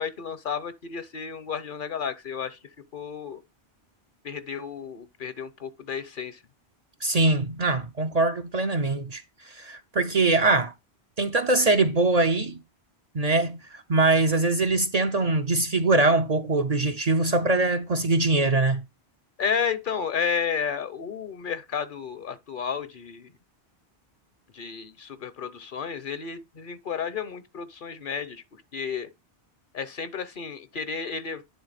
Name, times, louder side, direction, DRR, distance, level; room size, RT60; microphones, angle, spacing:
voice 1, 0.0-2.6 2.9-3.4 4.2-6.4 19.4-23.3 24.5-28.4 28.7-29.1 29.7-31.4, left 6 dB, 55° left, 0.9 m, -32 dB
voice 2, 7.0-10.7 11.2-12.6 13.1-18.8, right 2 dB, 45° right, 0.6 m, -23 dB
10.5 x 3.8 x 4.1 m
omnidirectional pair, 1.1 m